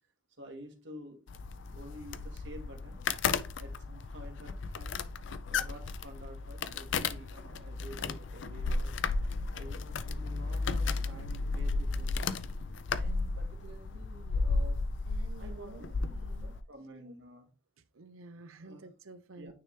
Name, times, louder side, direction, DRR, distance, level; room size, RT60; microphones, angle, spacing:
voice 1, 0.4-1.2 1.7-3.3 3.6-4.9 5.4-9.2 9.5-12.3 12.9-14.8 15.4-17.5 18.6-18.9 19.3-19.5, equal, 60° right, 4 dB, 1.5 m, -50 dB
sound 1, 1.3-16.6, left 4 dB, 60° left, 0.4 m, -34 dB
voice 2, 15.1-16.5 17.9-19.5, right 3 dB, 85° right, 11 dB, 0.7 m, -51 dB
9.2 x 3.3 x 3.2 m, 0.33 s
head